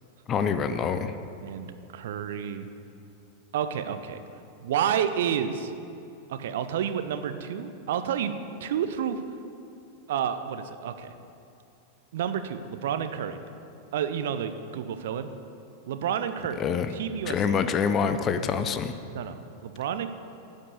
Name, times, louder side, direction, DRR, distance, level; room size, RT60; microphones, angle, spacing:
voice 1, 0.3-1.2 16.6-16.9 17.3-18.9, left 6 dB, 30° left, 10 dB, 0.5 m, -26 dB
voice 2, 1.4-2.7 3.5-4.2 4.6-5.7 6.3-8.3 8.6-9.2 10.1-11.1 12.1-13.4 13.9-15.3 15.9-16.6 16.9-17.6 19.1-20.1, right 8 dB, 55° right, 10 dB, 0.6 m, -30 dB
10.5 x 5.3 x 8.2 m, 2.6 s
figure-of-eight pair, 90°, 0 cm